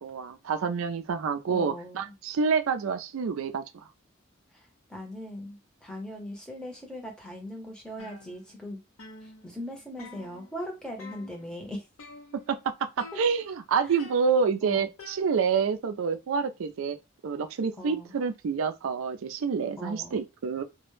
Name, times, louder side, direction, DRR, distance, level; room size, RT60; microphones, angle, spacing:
voice 1, 0.0-3.6 12.3-17.0 17.2-20.6, right 5 dB, 85° right, 0.4 m, -28 dB
voice 2, 1.5-2.1 4.5-8.8 9.2-11.9 13.9-14.0 14.6-14.9 17.8-18.1 19.8-20.2, equal, 5° left, 0.6 m, -40 dB
sound 1, 8.0-8.7 9.0-10.7 11.0-11.6 12.0-12.7 13.0-13.6 14.0-15.7, left 3 dB, 85° left, 0.6 m, -49 dB
2.1 x 2.0 x 3.0 m
head